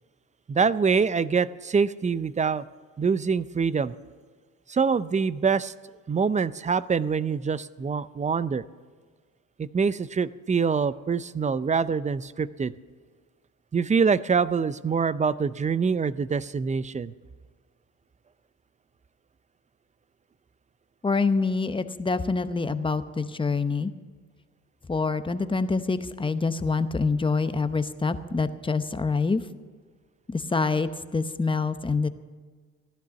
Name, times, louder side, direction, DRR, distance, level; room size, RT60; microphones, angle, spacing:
voice 1, 0.5-2.6 3.0-3.9 4.7-5.7 6.1-8.6 9.6-12.7 13.7-17.1, right 5 dB, 25° right, 17 dB, 0.5 m, -25 dB
voice 2, 21.0-23.9 24.9-29.4 30.3-32.1, left 4 dB, 15° left, 11 dB, 0.8 m, -26 dB
15.5 x 11.5 x 7.0 m, 1.5 s
cardioid pair, 90°, 30 cm